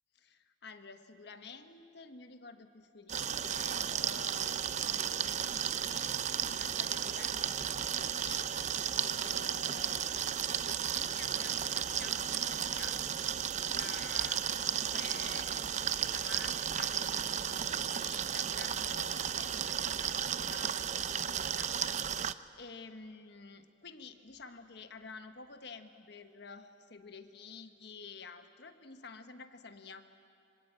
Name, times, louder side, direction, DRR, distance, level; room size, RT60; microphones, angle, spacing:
voice 1, 0.1-6.0 6.6-8.4 8.7-10.2 10.5-13.0 13.7-15.7 16.1-21.8 22.6-30.1, left 4 dB, 55° left, 8 dB, 1.2 m, -50 dB
sound 1, 3.1-22.3, right 8 dB, 35° right, 0.5 m, -34 dB
26.5 x 25.0 x 8.9 m, 2.5 s
head